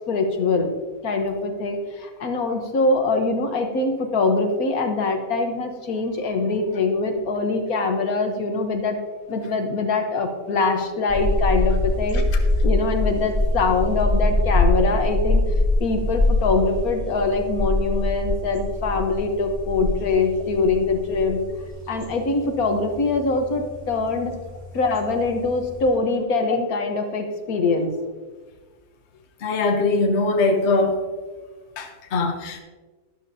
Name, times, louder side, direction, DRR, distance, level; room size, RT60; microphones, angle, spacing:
voice 1, 0.1-0.7 1.0-9.0 9.3-15.4 15.8-21.4 21.9-24.3 24.7-27.9, left 3 dB, 70° left, 4 dB, 1.6 m, -23 dB
sound 1, 11.1-25.9, left 2 dB, 25° right, 1.4 m, -24 dB
voice 2, 29.4-31.0 31.8-32.6, left 3 dB, 50° left, 5 dB, 1.1 m, -21 dB
12.5 x 11.0 x 2.8 m, 1.3 s
omnidirectional pair, 1.6 m